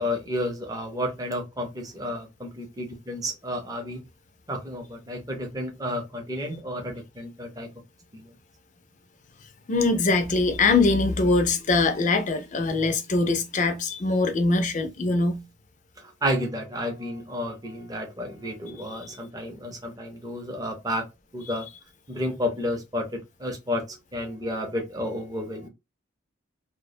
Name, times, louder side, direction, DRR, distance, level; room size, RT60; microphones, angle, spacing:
voice 1, 0.0-4.0 4.5-7.7 16.2-21.0 21.3-21.7 22.1-25.7, equal, 20° right, 0.6 m, -31 dB
voice 2, 9.7-15.4 18.9-19.0 21.5-21.6, left 3 dB, 40° left, 0.4 m, -23 dB
2.3 x 2.1 x 2.6 m
head